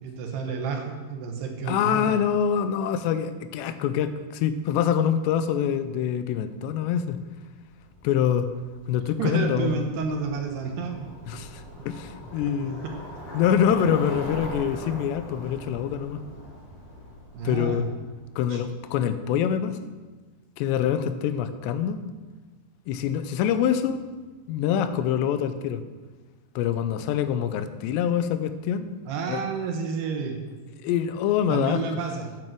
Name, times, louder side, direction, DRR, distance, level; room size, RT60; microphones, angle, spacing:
voice 1, 0.0-2.2 9.2-11.1 12.8-13.2 17.3-17.8 18.5-18.6 29.1-30.5 31.5-32.3, right 5 dB, 75° right, 3 dB, 3.0 m, -30 dB
voice 2, 1.6-7.2 8.0-8.5 8.9-9.8 11.3-12.8 13.3-16.2 17.4-17.9 18.4-19.9 20.6-22.0 22.9-24.0 24.5-25.8 26.6-28.9 29.3-29.4 30.8-31.8, left 9 dB, 85° left, 11 dB, 2.9 m, -25 dB
Bicycle, 7.5-18.4, equal, 45° left, 3.1 m, -41 dB
9.5 x 7.5 x 7.5 m, 1.3 s
omnidirectional pair, 5.0 m